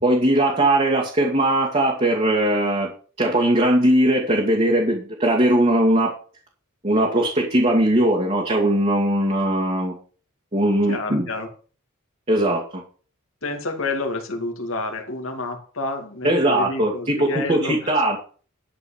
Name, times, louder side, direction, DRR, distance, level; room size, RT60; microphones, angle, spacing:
voice 1, 0.0-2.9 3.2-6.1 6.8-9.9 10.5-11.3 12.3-12.8 16.2-18.2, right 1 dB, 30° right, -2 dB, 2.0 m, -19 dB
voice 2, 10.9-11.5 13.4-17.9, left 2 dB, 65° left, 2 dB, 2.6 m, -29 dB
12.0 x 4.8 x 7.2 m, 0.40 s
head